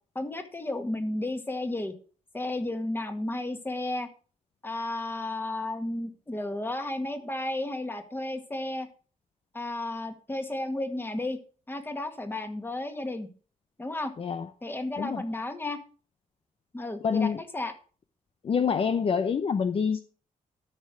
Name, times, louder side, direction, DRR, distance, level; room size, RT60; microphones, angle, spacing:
voice 1, 0.2-1.9 2.3-4.1 4.6-8.9 9.5-11.4 11.7-13.3 13.8-14.1 14.6-15.8 16.7-17.7, left 2 dB, 15° left, 2.0 m, -33 dB
voice 2, 14.2-14.5 15.0-15.2 17.0-17.4 18.4-20.0, left 6 dB, 45° left, 0.7 m, -26 dB
13.0 x 6.6 x 6.1 m
cardioid pair, 125°, 14 cm